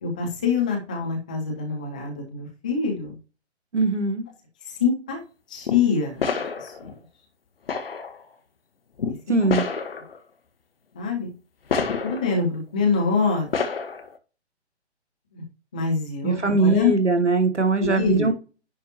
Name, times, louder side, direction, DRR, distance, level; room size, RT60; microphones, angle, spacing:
voice 1, 0.0-3.1 4.7-5.2 5.5-6.2 6.6-7.0 9.1-9.5 11.0-11.3 12.0-13.5 15.3-15.4 15.7-16.9 17.8-18.3, left 5 dB, 5° left, 0 dB, 0.4 m, -25 dB
voice 2, 3.7-4.2 9.3-9.7 16.2-18.3, right 3 dB, 90° right, 7 dB, 1.0 m, -21 dB
sound 1, 5.7-5.8 6.2-6.9 7.7-8.2 9.0-9.1 9.5-10.2 11.7-12.4 13.5-14.2, left 5 dB, 55° left, 1.3 m, -28 dB
10.5 x 4.7 x 2.9 m, 0.34 s
figure-of-eight pair, 135°, 34 cm